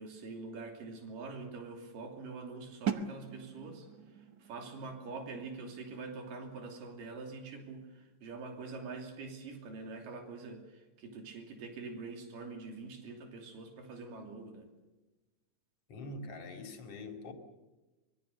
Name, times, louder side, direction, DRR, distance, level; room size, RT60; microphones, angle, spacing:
voice 1, 0.0-14.7, right 3 dB, 90° right, 4.6 m, -45 dB
sound 1, 2.9-8.6, right 7 dB, 70° right, 0.9 m, -43 dB
voice 2, 15.9-17.3, left 2 dB, 50° left, 3.2 m, -44 dB
25.0 x 23.0 x 6.8 m
omnidirectional pair, 3.8 m